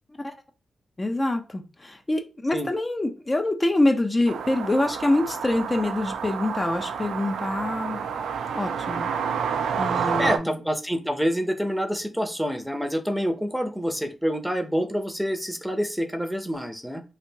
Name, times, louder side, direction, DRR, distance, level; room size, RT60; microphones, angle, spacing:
voice 1, 1.0-8.0 8.5-9.1 9.7-10.6, left 2 dB, 30° left, 5 dB, 0.6 m, -25 dB
sound 1, 4.3-10.4, right 6 dB, 85° right, 0.3 m, -29 dB
voice 2, 9.9-17.0, equal, 5° right, 6 dB, 0.7 m, -27 dB
3.3 x 2.5 x 2.9 m, 0.32 s
supercardioid pair, 40°, 0 cm